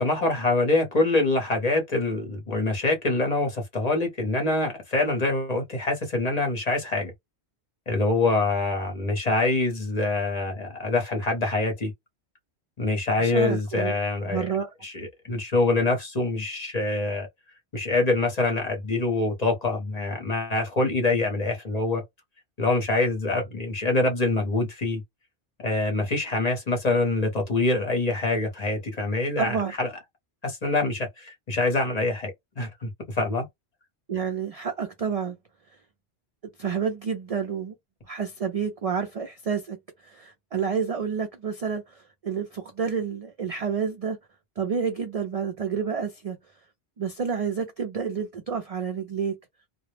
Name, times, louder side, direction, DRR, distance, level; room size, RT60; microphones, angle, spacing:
voice 1, 0.0-7.1 7.9-11.9 12.8-14.5 14.8-17.3 17.7-22.0 22.6-25.0 25.6-29.9 30.4-33.5, left 2 dB, 40° left, 0.8 m, -25 dB
voice 2, 13.2-13.9 14.3-14.7 29.4-29.7 34.1-35.4 36.6-37.7 38.1-44.2 44.6-46.4 47.0-49.4, right 6 dB, 55° right, 0.4 m, -29 dB
2.1 x 2.0 x 3.1 m
omnidirectional pair, 1.2 m